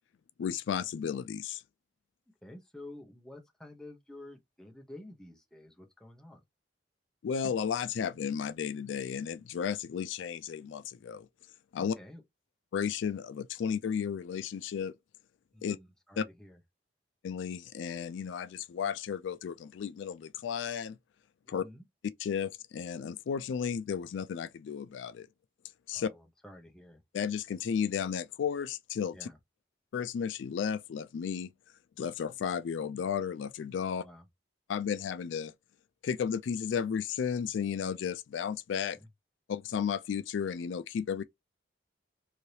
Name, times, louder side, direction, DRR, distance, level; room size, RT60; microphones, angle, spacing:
voice 1, 0.4-1.6 7.2-11.3 11.7-12.0 12.7-14.9 15.6-15.8 16.2-16.3 17.2-21.0 21.5-21.6 22.2-25.3 25.9-26.1 27.1-29.3 29.9-31.5 32.0-34.0 34.7-35.5 36.0-39.0 39.5-41.2, left 7 dB, 80° left, 0.3 m, -33 dB
voice 2, 2.4-6.4 11.8-12.2 15.5-16.6 21.6-21.9 25.9-27.0 29.1-29.4 33.9-34.3 38.9-39.1, left 1 dB, 5° left, 0.7 m, -50 dB
3.2 x 2.7 x 2.7 m
head